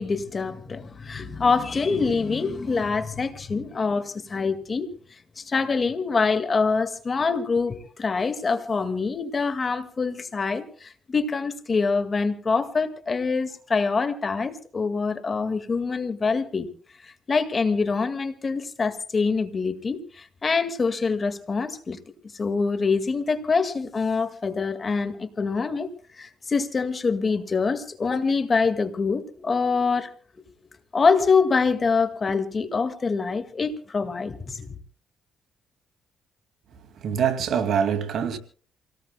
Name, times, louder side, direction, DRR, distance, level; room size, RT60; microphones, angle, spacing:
voice 1, 0.0-4.9 5.4-16.7 17.3-22.0 22.4-25.9 26.2-30.1 30.9-34.7, left 4 dB, 35° left, 2.0 m, -25 dB
voice 2, 36.7-38.4, right 7 dB, 65° right, 2.3 m, -25 dB
28.0 x 18.0 x 2.3 m
cardioid pair, 90°, 0 cm